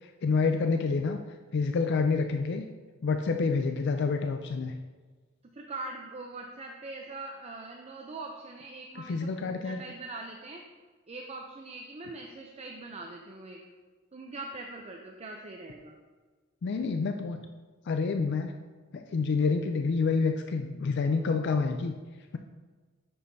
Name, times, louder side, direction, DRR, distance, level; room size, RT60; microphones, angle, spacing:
voice 1, 0.0-1.2 1.5-2.6 3.0-4.7 9.1-9.8 16.6-17.5 17.9-18.5 18.9-21.9, left 4 dB, 60° left, 6 dB, 0.4 m, -28 dB
voice 2, 5.5-10.6 11.1-13.6 14.1-16.0, right 2 dB, 30° right, 1 dB, 0.5 m, -42 dB
7.6 x 6.4 x 2.7 m, 1.4 s
head